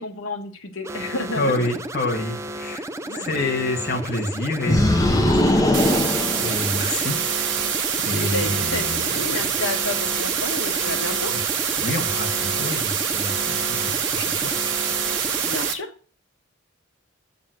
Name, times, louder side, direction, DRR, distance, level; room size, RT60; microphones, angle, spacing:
voice 1, 0.0-1.6 3.0-3.3 8.2-11.3 15.4-15.9, left 2 dB, 75° left, 6 dB, 1.5 m, -31 dB
sound 1, 0.8-15.7, right 1 dB, 15° right, 0.5 m, -33 dB
voice 2, 1.4-2.9 3.1-5.5 6.4-7.5 8.0-9.5 11.3-11.4 11.8-14.5 15.0-15.1, left 1 dB, 45° left, 2 dB, 1.3 m, -28 dB
sound 2, 4.7-7.1, left 1 dB, 15° left, 0.9 m, -20 dB
sound 3, 5.7-15.7, right 7 dB, 60° right, 1.5 m, -25 dB
7.7 x 6.8 x 7.9 m, 0.40 s
head